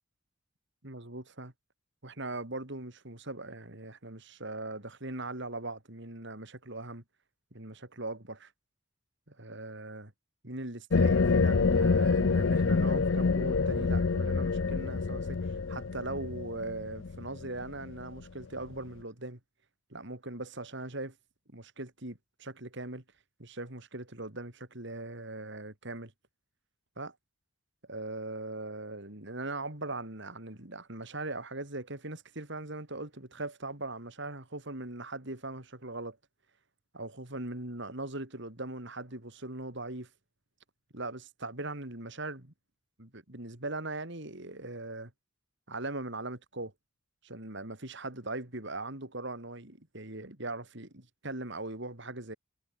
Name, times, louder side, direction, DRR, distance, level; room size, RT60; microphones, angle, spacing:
voice 1, 0.8-1.5 2.0-7.0 7.5-8.5 9.3-10.1 10.4-19.4 19.9-21.1 21.5-23.0 23.4-26.1 27.0-27.1 27.9-36.2 36.9-40.1 40.9-42.5 43.0-45.1 45.7-46.7 47.2-52.3, right 2 dB, 55° right, 3.4 m, -40 dB
sound 1, 10.9-18.2, left 4 dB, 60° left, 0.6 m, -27 dB
head